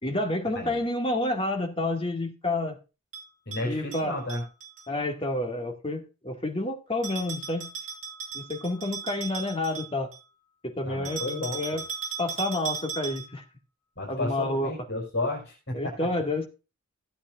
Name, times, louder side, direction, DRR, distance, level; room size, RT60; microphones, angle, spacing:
voice 1, 0.0-2.8 3.6-4.2 4.9-7.7 8.3-10.1 10.6-11.8 12.2-13.4 14.1-14.7 15.7-16.5, left 2 dB, 25° left, 4 dB, 2.0 m, -29 dB
Bell, 3.1-4.9 7.0-10.3 11.0-13.4, right 6 dB, 35° right, 7.3 m, -37 dB
voice 2, 3.4-4.4 10.8-11.8 14.0-16.1, left 2 dB, 55° left, 0 dB, 4.8 m, -32 dB
16.0 x 8.8 x 2.5 m, 0.30 s
head